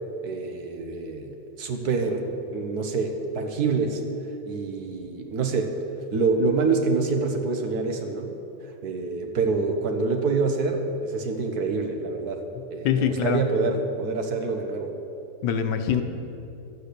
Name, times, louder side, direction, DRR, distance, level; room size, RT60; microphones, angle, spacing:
voice 1, 0.2-2.3 2.5-4.0 4.4-5.7 6.1-8.3 8.8-12.4 12.7-14.9, right 4 dB, 65° right, 4 dB, 1.5 m, -26 dB
voice 2, 12.8-13.7 15.4-16.0, left 7 dB, 80° left, 7 dB, 1.5 m, -24 dB
12.0 x 8.3 x 6.7 m, 2.8 s
omnidirectional pair, 1.9 m